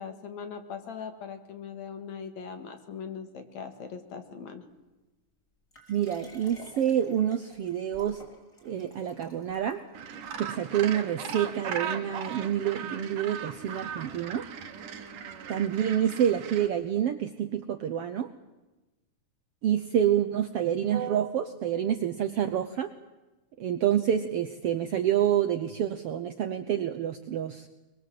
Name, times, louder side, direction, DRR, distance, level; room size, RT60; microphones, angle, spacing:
voice 1, 0.0-4.6 20.3-20.4, left 6 dB, 60° left, 7 dB, 3.1 m, -40 dB
Liquid, 5.7-10.3 10.9-11.0, left 1 dB, 25° left, 4.5 m, -52 dB
voice 2, 5.9-8.2 8.6-9.8 10.4-14.5 15.5-18.3 19.6-22.9 23.6-27.7, right 10 dB, 70° right, 8 dB, 1.5 m, -28 dB
Gull seagull, 9.9-16.7, right 7 dB, 85° right, 3.2 m, -38 dB
23.5 x 22.0 x 7.7 m, 1.1 s
omnidirectional pair, 3.6 m